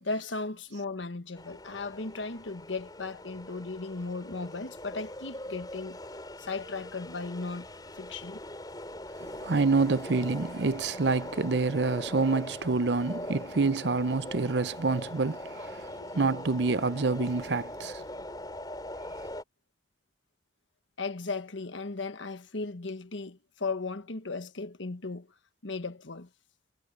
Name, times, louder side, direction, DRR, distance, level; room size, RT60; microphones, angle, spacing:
voice 1, 0.0-6.0 6.4-7.7 7.9-8.4 16.0-16.1 21.0-25.3 25.6-26.3, left 3 dB, 80° left, 1.4 m, -36 dB
sound 1, 1.4-19.4, left 1 dB, 20° left, 4.7 m, -42 dB
voice 2, 9.2-18.0, right 3 dB, 65° right, 0.7 m, -27 dB
head